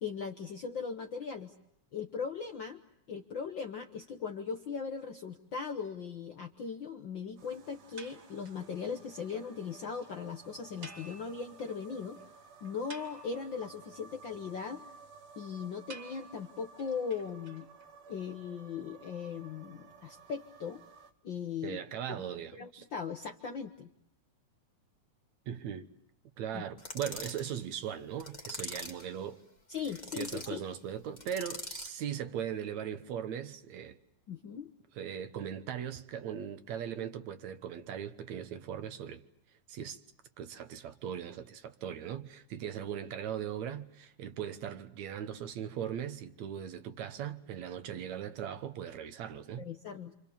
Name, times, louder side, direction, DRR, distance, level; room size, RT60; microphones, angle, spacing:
voice 1, 0.0-1.5 1.9-2.8 3.1-12.2 12.6-14.8 15.4-17.7 18.1-20.8 21.2-21.8 22.5-23.9 26.5-26.6 29.7-30.6 34.3-34.7 49.6-50.1, left 6 dB, 60° left, 1.3 m, -39 dB
sound 1, 7.4-21.1, right 5 dB, 90° right, 3.1 m, -55 dB
sound 2, 8.0-8.7 9.0-9.1 9.3-9.4 9.7-9.8 10.0-10.1 10.8-11.8 12.1-12.2 12.6-13.6 15.9-17.9, right 3 dB, 35° right, 2.8 m, -51 dB
voice 2, 21.6-22.9 25.5-25.9 26.4-29.4 30.1-34.0 34.9-39.2 39.7-40.0 40.4-49.7, right 9 dB, 65° right, 2.4 m, -39 dB
sound 3, 26.8-27.5 28.2-29.1 29.7-30.5 31.2-32.0, left 2 dB, 15° left, 2.1 m, -43 dB
28.0 x 26.5 x 7.2 m
omnidirectional pair, 3.6 m